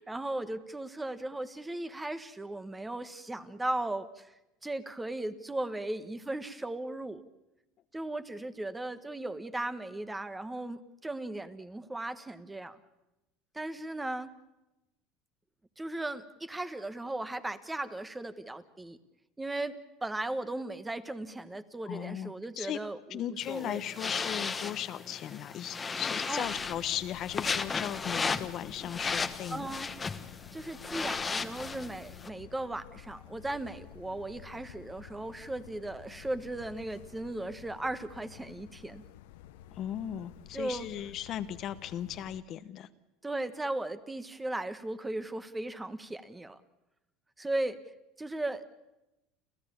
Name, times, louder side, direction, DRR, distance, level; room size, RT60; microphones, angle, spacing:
voice 1, 0.0-4.3 4.6-7.2 7.9-12.8 13.5-14.3 15.8-19.0 19.4-23.2 23.5-23.8 26.3-26.5 29.5-29.9 30.5-39.0 40.5-40.9 43.2-46.6 47.4-47.8 48.2-48.7, right 2 dB, 10° right, 12 dB, 1.3 m, -37 dB
voice 2, 21.8-22.8 23.1-29.8 39.7-42.9, left 11 dB, 50° left, 12 dB, 1.0 m, -37 dB
sound 1, 23.4-32.3, left 4 dB, 20° left, 1.1 m, -35 dB
sound 2, 26.4-42.4, left 12 dB, 80° left, 0.9 m, -52 dB
29.5 x 13.5 x 8.6 m, 0.97 s
supercardioid pair, 105°, 0 cm